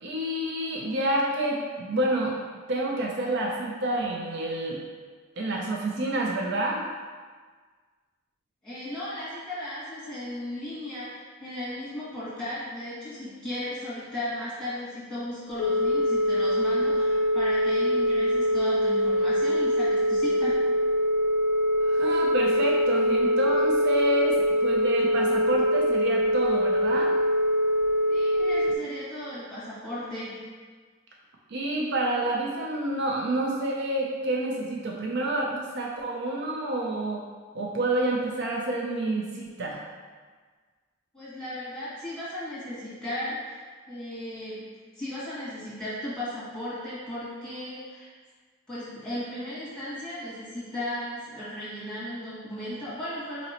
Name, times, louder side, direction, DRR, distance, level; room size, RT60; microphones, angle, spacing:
voice 1, 0.0-4.8 5.4-6.8 21.8-27.2 31.5-37.2 37.5-39.8, right 1 dB, 55° right, -1 dB, 0.4 m, -28 dB
voice 2, 8.6-20.6 28.1-30.4 41.1-44.7 44.9-48.1 48.7-53.5, left 1 dB, 5° left, -11 dB, 1.4 m, -36 dB
Telephone, 15.5-28.8, equal, 65° left, 0.4 m, -23 dB
4.0 x 2.8 x 2.8 m, 1.5 s
head